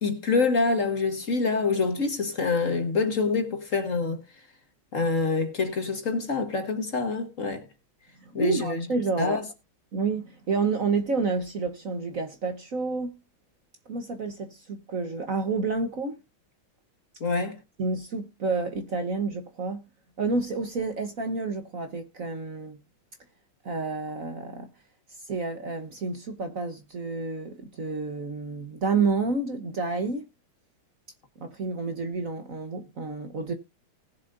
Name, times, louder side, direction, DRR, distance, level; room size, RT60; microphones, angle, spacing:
voice 1, 0.0-4.2 4.9-7.6 8.3-8.9 9.2-9.4 17.2-17.6, left 4 dB, 40° left, 1.6 m, -26 dB
voice 2, 8.2-9.4 9.9-13.2 13.9-16.2 17.8-19.8 20.2-22.8 23.6-24.7 25.2-30.3 31.4-33.5, right 4 dB, 45° right, 1.3 m, -29 dB
19.5 x 7.3 x 2.6 m
omnidirectional pair, 2.3 m